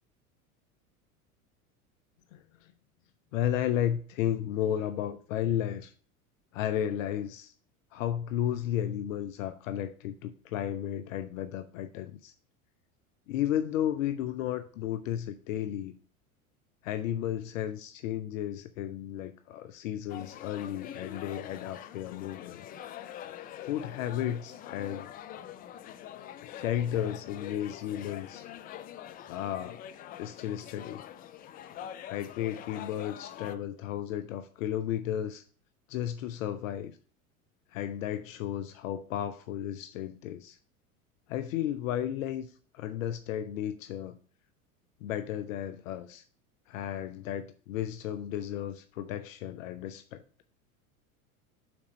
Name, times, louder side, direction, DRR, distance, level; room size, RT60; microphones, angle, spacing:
voice 1, 2.3-2.7 3.3-5.9 6.5-7.5 7.9-12.3 13.3-15.9 16.8-22.6 23.6-25.1 26.4-28.4 29.3-29.8 30.2-31.0 32.1-35.4 35.9-37.0 37.7-40.6 41.3-44.2 45.0-46.2 46.7-50.2, left 11 dB, 65° left, 10 dB, 0.7 m, -33 dB
sound 1, 20.1-33.6, left 10 dB, 20° left, 0.3 m, -45 dB
6.0 x 4.2 x 6.3 m, 0.42 s
hypercardioid pair, 85°, 43 cm